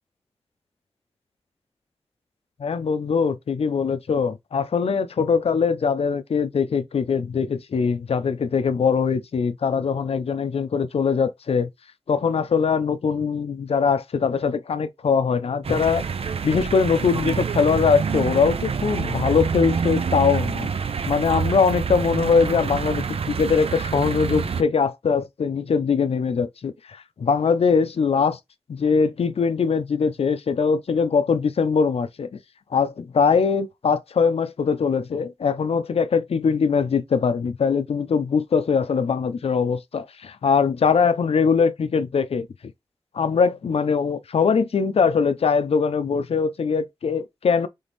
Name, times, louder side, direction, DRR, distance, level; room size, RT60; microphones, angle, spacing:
voice 1, 2.6-11.7 12.1-16.0 16.4-20.7 21.0-28.4 28.7-32.4 32.7-42.5 43.1-47.7, left 5 dB, 85° left, 0.5 m, -22 dB
sound 1, 15.6-24.6, right 6 dB, 75° right, 0.4 m, -27 dB
3.5 x 3.5 x 4.0 m
wide cardioid pair, 65°, 10 cm